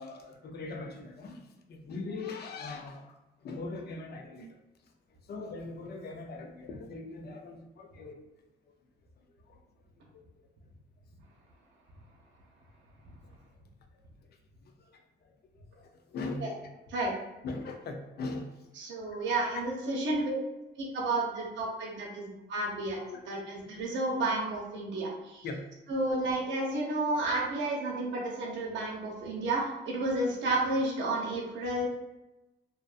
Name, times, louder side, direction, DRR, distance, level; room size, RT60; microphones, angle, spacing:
voice 1, 0.0-4.6 5.3-8.3 9.5-9.6 10.1-10.2 14.9-15.0 15.2-16.4 17.4-18.5 19.1-19.6 19.9-20.2 23.1-23.2 25.4-25.6, left 3 dB, 55° left, 4 dB, 0.5 m, -41 dB
voice 2, 18.8-20.4 20.8-23.0 23.3-25.5 25.9-31.9, right 2 dB, 70° right, -2 dB, 0.7 m, -31 dB
2.6 x 2.2 x 2.4 m, 0.99 s
cardioid pair, 90°, 20 cm